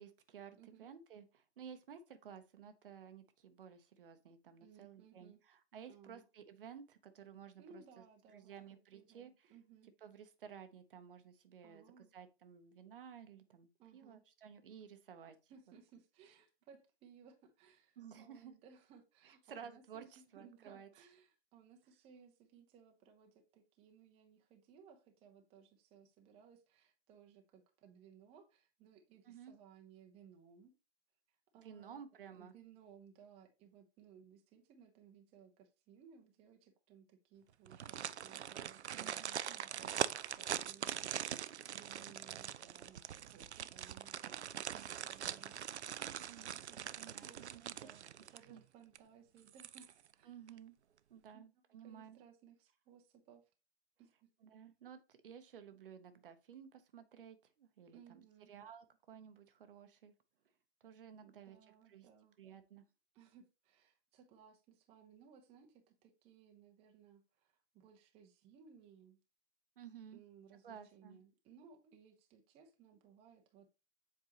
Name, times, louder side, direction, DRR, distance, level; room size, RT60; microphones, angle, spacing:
voice 1, 0.0-8.0 8.3-9.5 10.0-11.8 12.1-15.5 18.0-18.5 19.2-20.9 29.2-29.5 31.6-32.5 38.9-39.4 41.8-42.2 46.2-46.6 47.0-47.9 48.5-48.6 50.2-50.8 51.1-52.2 54.4-58.2 58.5-60.1 60.8-61.6 61.9-62.1 62.4-62.8 69.8-70.2 70.6-71.2, right 8 dB, 55° right, 0.9 m, -54 dB
voice 2, 0.5-0.9 4.6-5.4 5.9-6.2 7.6-9.9 11.6-12.1 13.8-14.2 15.5-30.7 31.5-32.0 32.3-45.6 46.7-48.1 48.3-49.9 50.1-50.3 51.3-51.5 51.8-53.4 54.0-54.3 57.9-58.5 61.2-62.4 63.1-69.2 70.1-73.7, right 7 dB, 20° right, 0.8 m, -62 dB
sound 1, 37.6-48.6 48.9-49.0 49.5-50.1 50.5-50.6, right 9 dB, 80° right, 0.5 m, -42 dB
7.5 x 4.5 x 3.0 m
figure-of-eight pair, 125°, 33 cm